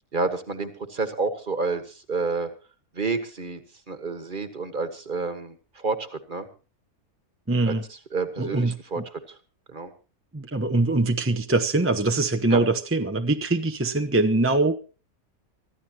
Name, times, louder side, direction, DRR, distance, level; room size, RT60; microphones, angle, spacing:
voice 1, 0.1-2.5 2.9-3.6 3.9-6.5 7.7-7.8 8.1-9.0 9.7-9.9 12.5-12.6, right 4 dB, 35° right, 1.7 m, -29 dB
voice 2, 7.5-7.8 8.4-9.0 10.3-14.9, right 2 dB, 10° right, 0.7 m, -23 dB
24.5 x 14.0 x 3.0 m
omnidirectional pair, 1.5 m